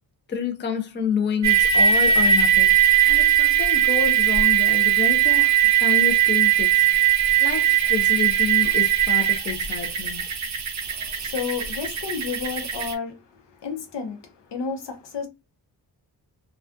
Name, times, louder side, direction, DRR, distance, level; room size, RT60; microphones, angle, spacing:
voice 1, 0.3-6.8 7.4-10.2, left 6 dB, 30° left, 0.4 m, -29 dB
sound 1, 1.4-12.9, right 9 dB, 45° right, 0.5 m, -19 dB
voice 2, 11.2-13.1 13.6-14.2 14.5-15.3, left 5 dB, 90° left, 0.7 m, -30 dB
2.4 x 2.3 x 2.4 m
wide cardioid pair, 150°, 41 cm